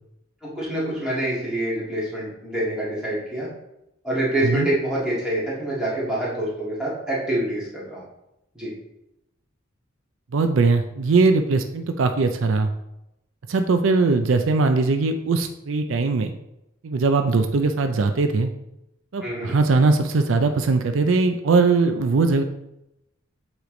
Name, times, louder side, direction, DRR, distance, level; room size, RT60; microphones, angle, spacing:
voice 1, 0.4-3.5 4.0-8.0 8.6-8.7 19.2-19.6, right 1 dB, 5° right, -8 dB, 2.0 m, -26 dB
voice 2, 10.3-12.7 13.5-16.3 16.8-18.5 19.1-22.4, right 3 dB, 75° right, 7 dB, 0.5 m, -20 dB
8.2 x 3.2 x 3.8 m, 0.86 s
head